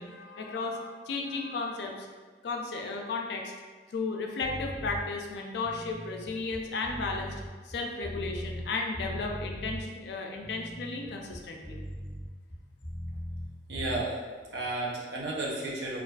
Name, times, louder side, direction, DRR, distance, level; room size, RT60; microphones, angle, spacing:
voice 1, 0.0-2.1 2.4-3.5 3.9-7.4 7.6-11.8, left 3 dB, 70° left, 1 dB, 0.3 m, -34 dB
sound 1, 4.4-5.0 5.5-8.7 8.9-9.8 10.3-13.5 13.7-14.0, equal, 10° left, 0.5 m, -39 dB
voice 2, 13.7-14.2 14.5-16.0, right 2 dB, 75° right, -3 dB, 0.5 m, -32 dB
2.4 x 2.3 x 2.2 m, 1.5 s
head